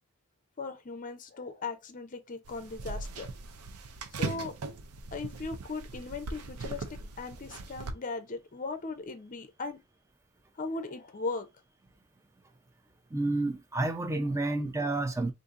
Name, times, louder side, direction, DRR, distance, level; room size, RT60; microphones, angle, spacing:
voice 1, 0.6-3.3 4.1-4.5 5.1-9.8 10.6-11.5, left 3 dB, 35° left, 0.5 m, -38 dB
sound 1, 2.4-7.9, right 3 dB, 80° right, 0.6 m, -39 dB
voice 2, 13.1-15.3, right 2 dB, 15° right, 0.5 m, -30 dB
2.7 x 2.5 x 3.6 m
head